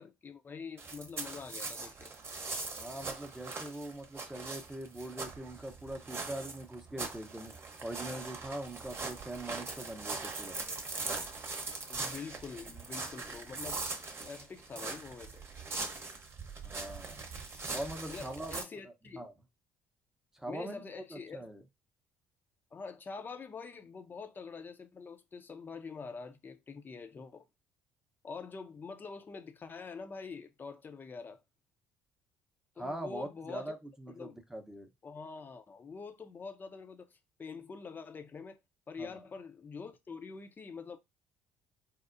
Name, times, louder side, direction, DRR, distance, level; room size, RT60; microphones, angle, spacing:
voice 1, 0.0-2.1 11.9-13.8 14.2-15.4 18.1-19.3 20.5-21.5 22.7-27.4 28.2-31.4 32.8-33.7 34.1-34.4 35.0-38.6 38.9-41.0, left 5 dB, 30° left, 0.6 m, -45 dB
sound 1, 0.8-18.6, right 3 dB, 40° right, 0.9 m, -41 dB
voice 2, 2.7-7.5 7.8-10.6 16.6-17.3 17.7-18.6 18.8-19.3 20.3-20.8 21.1-21.6 32.8-34.9 39.0-39.3, right 1 dB, 5° right, 0.8 m, -42 dB
4.2 x 2.0 x 2.5 m
hypercardioid pair, 55°, 6 cm